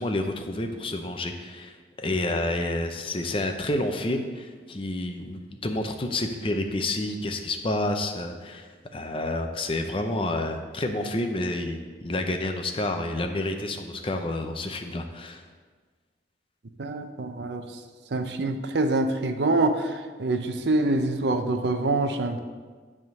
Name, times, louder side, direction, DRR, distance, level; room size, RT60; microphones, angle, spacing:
voice 1, 0.0-15.4, left 1 dB, 30° left, 5 dB, 0.6 m, -29 dB
voice 2, 16.8-17.8 18.1-22.4, right 2 dB, 75° right, 7 dB, 0.6 m, -25 dB
10.5 x 3.7 x 6.3 m, 1.5 s
head